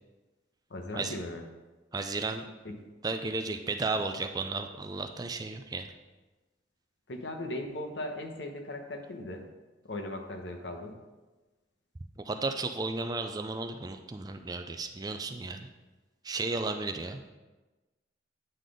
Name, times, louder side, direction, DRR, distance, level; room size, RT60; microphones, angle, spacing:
voice 1, 0.7-1.5 2.6-2.8 7.1-9.5 9.8-11.0, left 1 dB, 70° left, 3 dB, 1.0 m, -38 dB
voice 2, 1.9-2.4 3.0-5.9 12.2-15.7 16.2-17.2, right 3 dB, 20° right, 7 dB, 0.4 m, -34 dB
9.1 x 4.0 x 5.0 m, 1.2 s
head